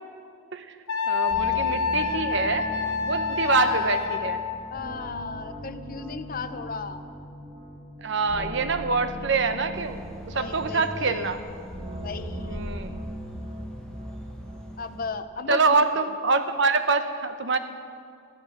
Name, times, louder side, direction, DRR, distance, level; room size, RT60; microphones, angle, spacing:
Wind instrument woodwind instrument, 0.9-4.7, left 6 dB, 75° left, 1.1 m, -27 dB
voice 1, 1.1-2.6 3.1-4.4 8.0-11.4 12.5-13.0 15.5-17.6, right 4 dB, 55° right, 9 dB, 0.9 m, -25 dB
sound 1, 1.3-15.1, equal, 25° right, 1.7 m, -40 dB
voice 2, 3.5-4.2 4.7-7.0 10.3-11.4 12.0-12.6 14.8-16.1, left 4 dB, 40° left, 11 dB, 0.6 m, -36 dB
sound 2, 9.7-15.0, equal, 5° left, 1.5 m, -40 dB
15.0 x 13.5 x 6.0 m, 2.3 s
head